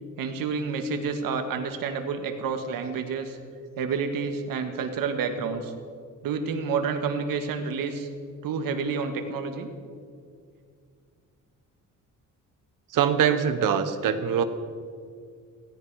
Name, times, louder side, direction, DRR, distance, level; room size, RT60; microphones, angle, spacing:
voice 1, 0.2-3.4 3.8-5.7 6.2-8.1 8.4-9.7, right 5 dB, 90° right, 6 dB, 1.7 m, -29 dB
voice 2, 12.9-14.4, right 8 dB, 70° right, 10 dB, 1.2 m, -23 dB
17.0 x 16.5 x 4.9 m, 2.2 s
cardioid pair, 155°, 33 cm